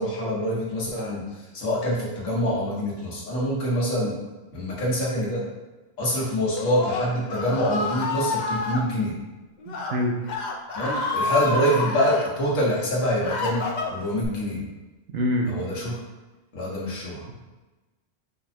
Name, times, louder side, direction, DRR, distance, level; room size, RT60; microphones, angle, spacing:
voice 1, 0.0-4.1 4.5-5.4 6.0-9.1 10.7-14.6 15.4-16.0 16.5-17.2, equal, 85° left, -4 dB, 1.6 m, -25 dB
Screaming, 6.4-8.8 9.6-9.9 10.2-12.3 12.9-14.3, left 3 dB, 55° left, 0.5 m, -29 dB
voice 2, 9.7-10.2 15.1-15.6, left 1 dB, 60° right, 1 dB, 0.8 m, -25 dB
5.3 x 2.2 x 4.2 m, 1.2 s
omnidirectional pair, 1.3 m